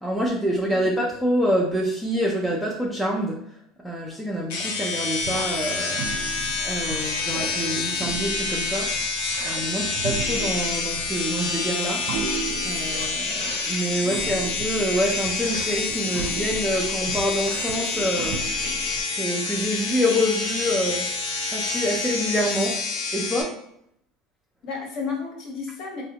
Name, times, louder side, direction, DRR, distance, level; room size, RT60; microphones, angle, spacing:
voice 1, 0.0-3.4 3.8-6.1 6.6-8.9 9.4-12.0 12.6-21.1 21.5-23.5, equal, 5° right, -4 dB, 0.3 m, -26 dB
voice 2, 0.7-1.0 9.8-10.0 13.9-14.4 24.6-26.0, left 4 dB, 40° left, 0 dB, 0.9 m, -34 dB
sound 1, 4.5-23.4, left 4 dB, 70° left, 0.6 m, -28 dB
sound 2, 5.2-19.0, right 3 dB, 75° right, 0.4 m, -36 dB
3.8 x 2.0 x 2.8 m, 0.72 s
cardioid pair, 170°, 0 cm